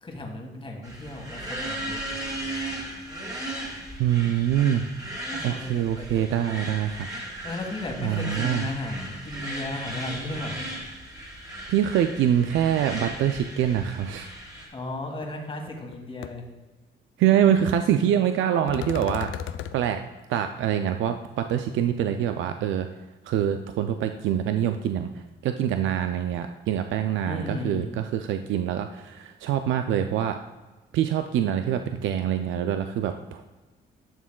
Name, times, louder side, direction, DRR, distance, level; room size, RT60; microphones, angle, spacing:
voice 1, 0.0-2.0 5.3-6.8 7.4-10.6 14.7-16.4 27.2-27.9, left 2 dB, 25° left, 2 dB, 1.6 m, -35 dB
sound 1, 0.8-14.7, right 1 dB, 20° right, 2.2 m, -36 dB
voice 2, 4.0-4.8 5.4-7.1 8.0-8.7 11.7-14.3 17.2-19.3 19.7-20.0 20.3-22.9 23.3-25.1 25.4-30.4 30.9-33.4, right 10 dB, 75° right, 8 dB, 0.4 m, -25 dB
sound 2, 15.2-15.3 15.7-15.9 16.2-16.3 18.7-19.7, left 10 dB, 75° left, 0.4 m, -34 dB
11.0 x 6.3 x 2.3 m, 1.2 s
cardioid pair, 90°, 20 cm